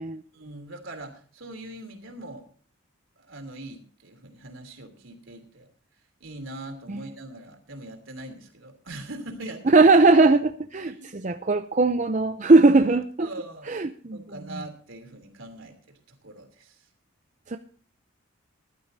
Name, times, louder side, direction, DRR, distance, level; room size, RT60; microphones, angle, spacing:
voice 1, 0.3-2.4 3.2-5.7 6.2-9.8 10.9-11.3 13.2-13.8 14.1-15.8 16.1-16.9, right 1 dB, 65° right, 4 dB, 3.1 m, -41 dB
voice 2, 9.6-13.3 13.6-14.6 17.5-17.6, right 3 dB, 35° right, 7 dB, 0.5 m, -20 dB
20.0 x 12.0 x 2.7 m, 0.43 s
head